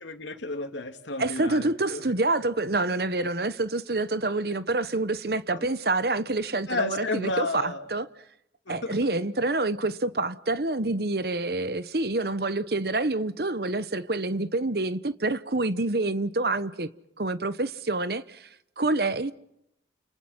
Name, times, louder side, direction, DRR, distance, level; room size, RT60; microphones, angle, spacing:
voice 1, 0.0-2.0 5.5-5.7 6.7-7.9 8.7-9.0, left 2 dB, 85° left, 2.6 m, -32 dB
voice 2, 1.2-8.1 8.7-16.9 17.2-18.5 18.8-19.3, right 2 dB, 55° right, 1.0 m, -27 dB
30.0 x 26.0 x 5.8 m
head